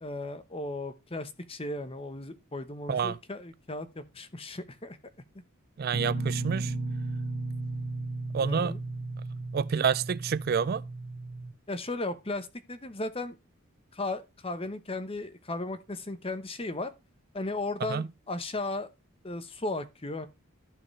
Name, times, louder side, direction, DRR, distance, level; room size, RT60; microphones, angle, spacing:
voice 1, 0.0-5.0 8.4-8.8 11.7-13.4 13.9-16.9 17.3-18.9 19.2-20.3, left 2 dB, 25° left, 0.9 m, -36 dB
voice 2, 5.8-6.7 8.3-8.7 9.5-10.8 17.9-18.1, right 6 dB, 45° right, 0.3 m, -28 dB
sound 1, 5.9-11.5, right 2 dB, 60° right, 2.9 m, -34 dB
14.5 x 4.9 x 3.2 m
head